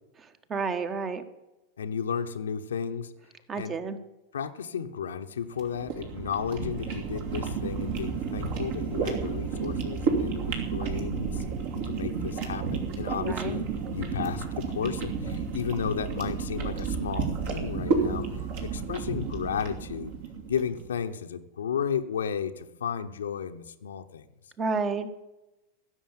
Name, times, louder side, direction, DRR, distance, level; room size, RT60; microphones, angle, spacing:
voice 1, 0.5-1.2 3.5-4.0 13.2-13.7 24.6-25.1, right 4 dB, 25° right, 11 dB, 1.4 m, -30 dB
voice 2, 1.8-3.1 3.6-3.8 4.3-11.4 11.8-18.3 18.6-20.2 20.5-24.3, left 7 dB, 65° left, 7 dB, 0.9 m, -33 dB
sound 1, 5.5-20.8, right 5 dB, 50° right, 2.8 m, -31 dB
16.0 x 7.2 x 8.9 m, 0.99 s
figure-of-eight pair, 90°, 0 cm